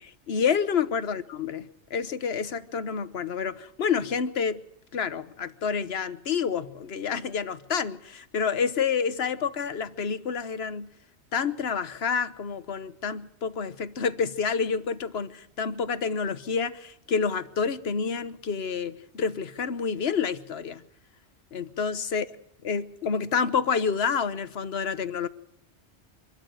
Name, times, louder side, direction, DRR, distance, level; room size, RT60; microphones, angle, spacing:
voice 1, 0.0-4.6 4.9-10.9 11.3-20.8 21.5-22.2 22.6-25.3, left 6 dB, 65° left, 1.3 m, -28 dB
25.0 x 13.0 x 7.9 m
omnidirectional pair, 1.2 m